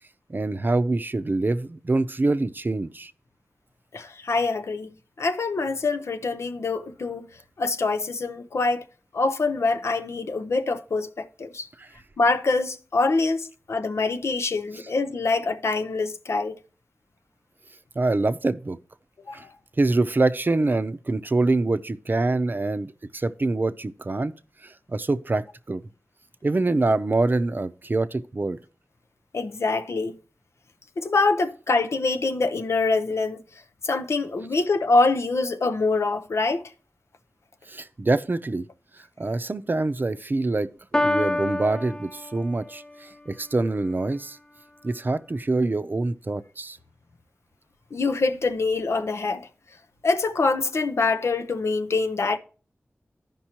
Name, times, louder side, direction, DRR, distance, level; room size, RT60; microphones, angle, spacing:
voice 1, 0.3-3.1 11.8-11.9 18.0-18.8 19.3-19.4 19.8-24.3 24.6-25.8 26.4-28.6 37.7-38.7 39.2-40.7 41.0-44.4 44.8-46.8, right 2 dB, 45° right, 0.5 m, -25 dB
voice 2, 3.9-4.9 5.2-7.3 7.6-8.8 9.1-11.7 12.2-16.6 19.3-19.5 29.3-30.1 31.0-33.4 33.8-36.7 47.9-49.5 50.0-52.4, left 3 dB, 85° left, 0.6 m, -25 dB
Piano, 40.9-42.9, left 1 dB, 15° left, 0.4 m, -27 dB
14.0 x 5.3 x 2.9 m
wide cardioid pair, 55°, 5 cm